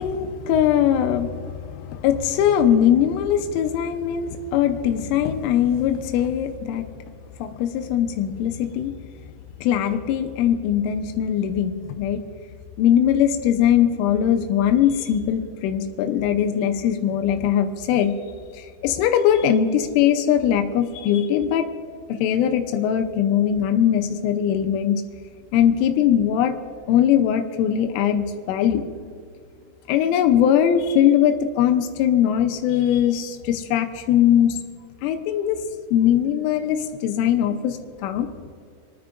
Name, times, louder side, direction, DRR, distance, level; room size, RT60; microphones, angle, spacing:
voice 1, 0.0-6.9 7.4-8.9 9.6-12.2 12.8-18.1 18.5-21.7 22.1-25.0 25.5-26.5 26.9-28.8 29.9-34.6 35.0-35.6 35.9-38.3, left 9 dB, 90° left, 6 dB, 3.2 m, -21 dB
28.5 x 9.5 x 2.5 m, 2.3 s
omnidirectional pair, 5.6 m